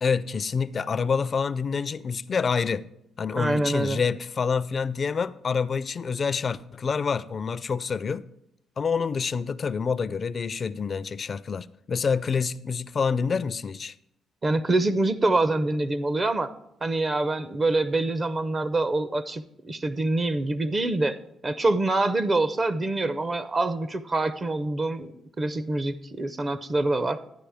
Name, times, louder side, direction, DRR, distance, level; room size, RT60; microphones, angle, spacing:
voice 1, 0.0-2.8 3.2-8.2 8.8-13.9, left 5 dB, 45° left, 0.4 m, -27 dB
voice 2, 3.4-4.0 14.4-16.5 16.8-21.2 21.4-25.1 25.4-27.2, right 2 dB, 30° right, 0.5 m, -25 dB
11.5 x 9.7 x 3.5 m
cardioid pair, 90°, 0 cm